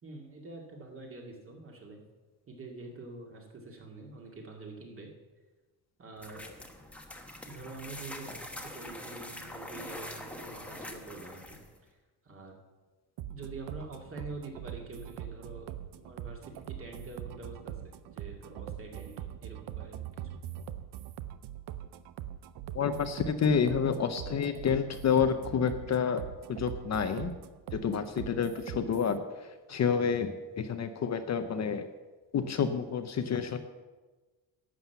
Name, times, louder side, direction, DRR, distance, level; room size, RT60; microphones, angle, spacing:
voice 1, 0.0-2.0 2.5-5.1 6.0-6.5 7.5-11.6 11.9-12.0 12.2-12.5 13.3-19.2 19.4-20.2 29.7-29.9, right 2 dB, 35° right, 1 dB, 2.3 m, -46 dB
sound 1, 6.2-11.8, left 1 dB, 5° left, 1.1 m, -44 dB
sound 2, 13.2-29.2, right 11 dB, 85° right, 0.7 m, -42 dB
voice 2, 22.7-26.2 26.5-27.3 27.7-31.9 32.3-33.6, left 6 dB, 40° left, 8 dB, 0.7 m, -29 dB
11.5 x 7.7 x 6.9 m, 1.2 s
cardioid pair, 155°, 40 cm